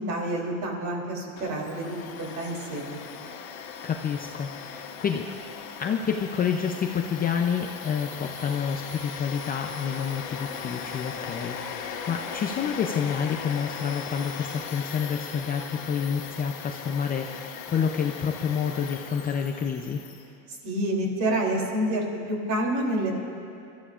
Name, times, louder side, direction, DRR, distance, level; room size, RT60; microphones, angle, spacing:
voice 1, 0.0-3.0 20.5-23.1, right 1 dB, 45° right, -1 dB, 3.2 m, -28 dB
Domestic sounds home sounds, 1.4-20.2, left 6 dB, 80° left, 1.7 m, -38 dB
voice 2, 3.8-5.3 5.8-20.0, left 7 dB, 20° left, 3 dB, 0.6 m, -29 dB
26.0 x 13.5 x 2.5 m, 2.6 s
supercardioid pair, 135°, 40 cm